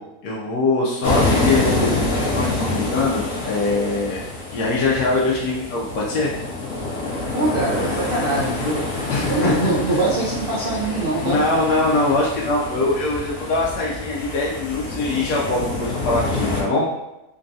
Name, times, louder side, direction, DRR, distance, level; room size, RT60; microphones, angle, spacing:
voice 1, 0.0-6.3 9.1-9.7 11.2-16.9, left 2 dB, 90° left, -4 dB, 1.2 m, -22 dB
sound 1, 1.0-16.6, left 2 dB, 65° left, 1.0 m, -26 dB
voice 2, 7.3-8.8 9.3-11.4, right 2 dB, 55° right, -7 dB, 0.6 m, -23 dB
3.9 x 2.3 x 2.6 m, 0.92 s
omnidirectional pair, 1.6 m